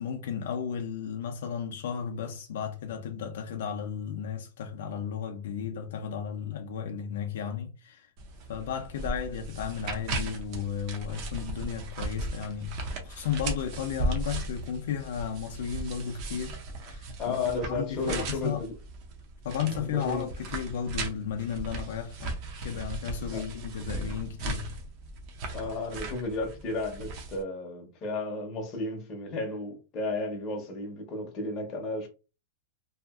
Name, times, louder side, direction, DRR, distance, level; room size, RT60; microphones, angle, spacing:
voice 1, 0.0-8.1 8.5-16.6 16.9-18.6 19.4-24.7, left 8 dB, 60° left, 0.4 m, -34 dB
sound 1, 8.2-27.4, right 2 dB, 30° right, 0.4 m, -37 dB
voice 2, 17.2-18.7 19.5-20.3 23.3-23.4 25.5-32.1, left 2 dB, 20° left, 0.6 m, -33 dB
2.7 x 2.4 x 2.3 m
supercardioid pair, 180°, 0 cm